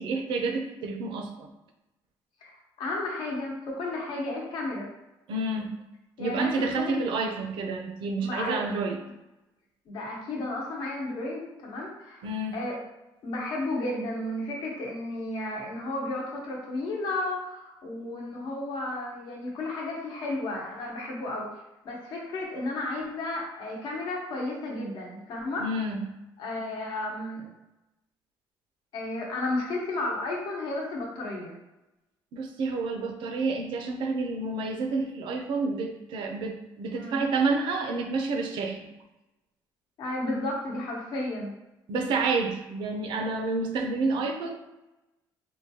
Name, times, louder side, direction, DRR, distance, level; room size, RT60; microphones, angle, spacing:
voice 1, 0.0-1.5 5.3-5.8 6.2-9.0 12.2-12.6 25.6-26.0 32.3-38.9 41.9-44.5, right 3 dB, 75° right, 4 dB, 0.5 m, -29 dB
voice 2, 2.4-4.9 6.2-7.1 8.2-8.7 9.9-12.2 12.5-12.8 13.2-21.5 21.8-25.7 26.4-27.5 28.9-31.5 36.9-37.2 40.0-41.5, left 2 dB, 65° left, -2 dB, 0.9 m, -33 dB
3.7 x 2.3 x 2.8 m, 0.96 s
cardioid pair, 130°, 8 cm